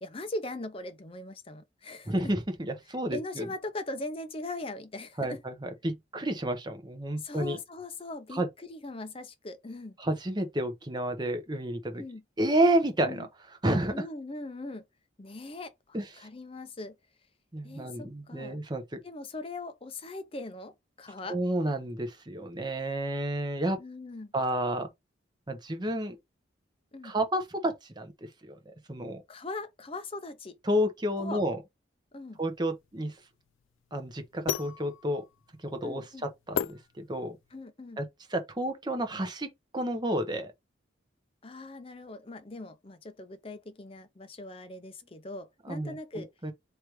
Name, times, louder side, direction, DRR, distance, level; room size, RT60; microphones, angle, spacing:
voice 1, 0.0-2.3 3.1-5.4 7.2-10.0 12.0-12.2 13.0-13.3 13.9-14.8 15.2-17.0 17.6-18.6 19.0-21.4 23.8-24.3 26.9-27.1 29.3-30.6 31.2-31.4 32.1-32.4 35.8-36.3 37.5-38.0 41.4-46.3, left 2 dB, 30° left, 0.6 m, -40 dB
voice 2, 2.1-3.5 5.2-7.6 8.3-8.5 10.0-12.0 12.4-13.3 13.6-14.1 15.9-16.3 17.5-19.0 21.3-23.8 24.3-24.9 25.5-26.2 27.0-28.1 28.5-29.2 30.6-31.6 32.4-33.2 33.9-35.2 35.6-36.1 36.5-37.4 38.0-40.5 45.6-46.5, right 1 dB, 20° right, 0.8 m, -30 dB
sound 1, 32.4-37.6, left 9 dB, 80° left, 0.3 m, -37 dB
3.3 x 3.0 x 4.7 m
head